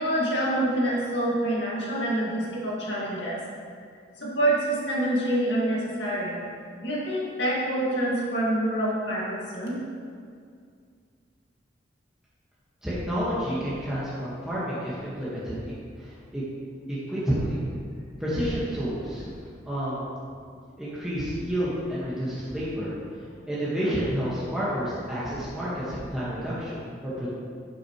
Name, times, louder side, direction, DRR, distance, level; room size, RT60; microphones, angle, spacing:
voice 1, 0.0-3.4 4.2-6.4 6.8-9.8 23.8-24.0, right 1 dB, 65° left, -6 dB, 2.2 m, -26 dB
voice 2, 12.8-15.5 16.0-16.4 17.1-17.6 18.2-19.3 19.7-20.1 20.8-22.9 23.5-27.3, equal, 5° right, -10 dB, 1.6 m, -29 dB
12.0 x 6.1 x 3.2 m, 2.2 s
head